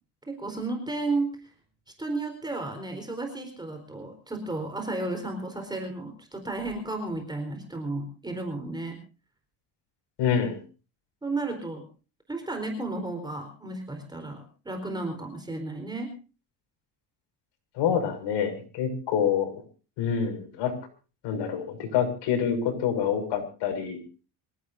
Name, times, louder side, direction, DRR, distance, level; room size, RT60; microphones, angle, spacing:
voice 1, 0.3-1.5 2.0-9.0 11.2-11.8 12.3-16.1, right 2 dB, 10° right, 5 dB, 4.2 m, -33 dB
voice 2, 10.2-10.6 17.7-19.6 20.0-20.7 21.2-24.0, left 7 dB, 80° left, 7 dB, 6.5 m, -27 dB
26.0 x 17.0 x 2.7 m, 0.35 s
cardioid pair, 150°, 41 cm